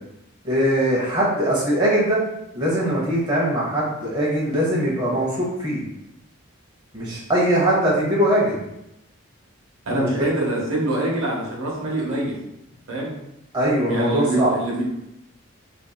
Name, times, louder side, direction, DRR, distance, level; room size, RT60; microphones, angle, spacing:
voice 1, 0.4-2.2 2.5-5.8 6.9-8.6 10.0-10.1 13.5-14.5, right 1 dB, 20° right, -7 dB, 0.7 m, -21 dB
voice 2, 9.9-12.4 12.9-13.1 13.9-14.8, right 1 dB, 85° right, -4 dB, 0.8 m, -24 dB
2.8 x 2.5 x 2.2 m, 0.85 s
head